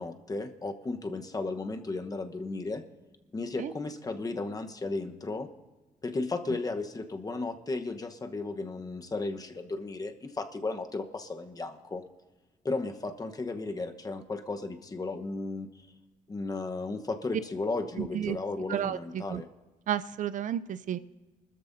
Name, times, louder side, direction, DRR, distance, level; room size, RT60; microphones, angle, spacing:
voice 1, 0.0-2.8 3.3-5.5 6.0-12.0 12.6-15.7 16.3-19.5, left 3 dB, 25° left, 6 dB, 1.1 m, -34 dB
voice 2, 18.0-18.4 18.7-19.4 19.9-21.0, right 10 dB, 65° right, 14 dB, 0.5 m, -32 dB
24.0 x 13.5 x 2.7 m, 1.2 s
cardioid pair, 100°, 14 cm